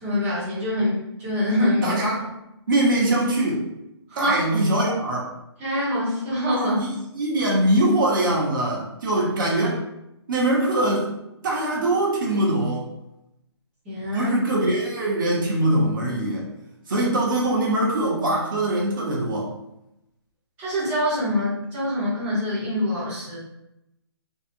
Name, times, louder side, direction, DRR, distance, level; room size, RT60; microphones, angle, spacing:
voice 1, 0.0-2.0 4.1-4.4 5.6-6.7 13.8-14.3 20.6-23.4, left 1 dB, 10° right, -10 dB, 1.0 m, -24 dB
voice 2, 1.8-2.2 2.7-3.6 4.2-5.3 6.5-6.9 7.1-9.8 10.3-11.1 11.4-12.9 14.1-16.5 16.9-19.5, right 1 dB, 50° right, -3 dB, 0.9 m, -22 dB
2.7 x 2.4 x 2.6 m, 0.87 s
hypercardioid pair, 165°, 14 cm